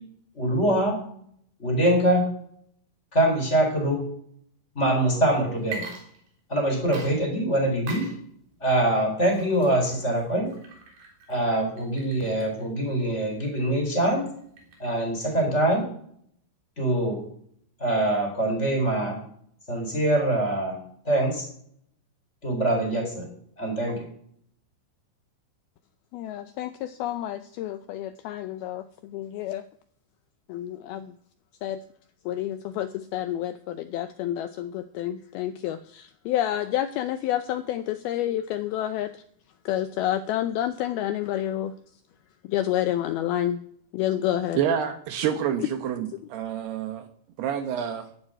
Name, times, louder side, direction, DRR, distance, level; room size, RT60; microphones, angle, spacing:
voice 1, 0.3-1.0 1.6-2.2 3.1-4.0 4.7-5.8 6.5-8.0 8.6-10.5 11.3-14.3 14.8-15.8 16.8-17.2 17.8-19.2 19.7-20.8 21.1-21.5 22.4-23.3 23.6-24.1, right 1 dB, 15° left, 2 dB, 4.1 m, -24 dB
Water / Liquid, 5.6-6.6 6.9-15.2, right 4 dB, 55° right, 5.3 m, -44 dB
voice 2, 26.1-29.6 30.5-31.2 31.6-31.8 32.3-39.2 39.7-41.7 42.4-43.6 43.9-44.6 45.6-45.7, left 12 dB, 85° left, 10 dB, 2.2 m, -29 dB
voice 3, 44.6-47.1 47.4-48.1, right 8 dB, 70° right, 8 dB, 2.8 m, -28 dB
12.0 x 11.0 x 9.0 m, 0.64 s
omnidirectional pair, 5.3 m